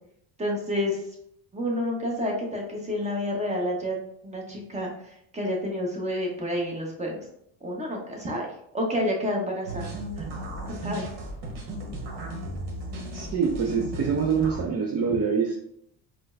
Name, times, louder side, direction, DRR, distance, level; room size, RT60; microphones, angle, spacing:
voice 1, 0.4-1.0 1.5-4.0 4.2-4.9 5.3-7.2 7.6-8.5 8.7-9.9 10.2-11.0, left 1 dB, 15° right, -1 dB, 1.1 m, -29 dB
sound 1, 9.7-14.6, right 1 dB, 60° right, 1.2 m, -35 dB
voice 2, 13.1-15.6, right 6 dB, 30° right, 1 dB, 0.5 m, -25 dB
4.3 x 2.2 x 2.6 m, 0.72 s
supercardioid pair, 80°, 49 cm